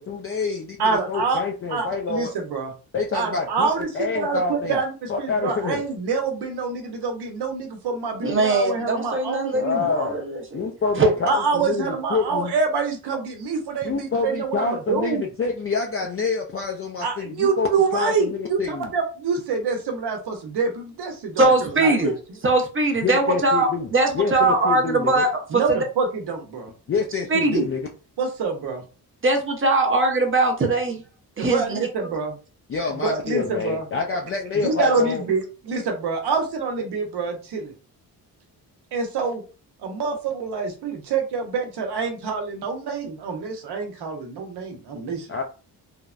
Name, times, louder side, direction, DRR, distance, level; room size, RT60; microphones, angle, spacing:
voice 1, 0.1-2.3 2.9-4.8 5.1-5.8 9.5-10.2 10.5-12.5 13.8-18.9 23.0-23.9 24.1-25.2 26.9-27.8 32.7-35.2 45.3-45.4, left 4 dB, 35° left, 1 dB, 0.4 m, -27 dB
voice 2, 0.8-1.4 1.7-2.7 3.1-3.9 4.1-9.8 11.3-15.2 17.0-21.5 21.7-22.1 25.5-26.7 28.2-28.8 31.4-32.3 33.0-33.8 34.6-37.7 38.9-39.4 39.8-45.3, right 4 dB, 75° right, 3 dB, 0.9 m, -26 dB
voice 3, 8.2-10.7 11.0-11.1 21.4-22.1 22.4-25.8 27.3-27.6 29.2-31.0 31.4-32.1, right 2 dB, 30° right, 4 dB, 0.8 m, -21 dB
3.2 x 2.1 x 2.4 m, 0.35 s
cardioid pair, 105°, 40 cm